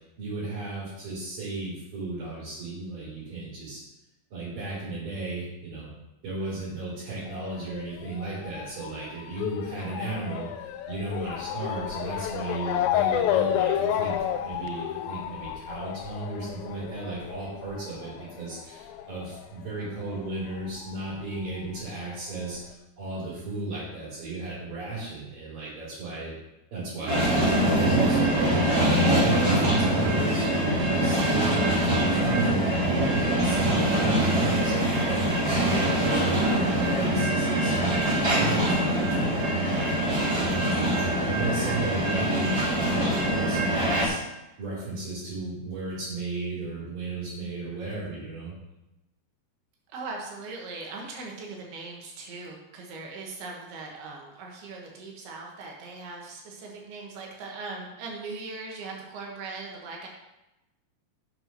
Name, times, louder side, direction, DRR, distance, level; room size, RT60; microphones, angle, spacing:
voice 1, 0.2-3.8 4.3-5.9 6.2-10.5 10.9-14.1 14.4-26.3 26.7-30.5 30.8-44.2 44.6-48.5, right 3 dB, 60° right, -11 dB, 5.1 m, -34 dB
Motor vehicle (road) / Siren, 7.3-20.3 20.5-21.7 22.4-22.5 22.7-22.8, left 10 dB, 80° left, 2.3 m, -31 dB
sound 1, 27.1-44.1, right 1 dB, 30° right, 2.6 m, -24 dB
voice 2, 49.9-60.1, right 3 dB, 80° right, -1 dB, 3.4 m, -39 dB
7.7 x 6.2 x 6.0 m, 0.95 s
omnidirectional pair, 4.4 m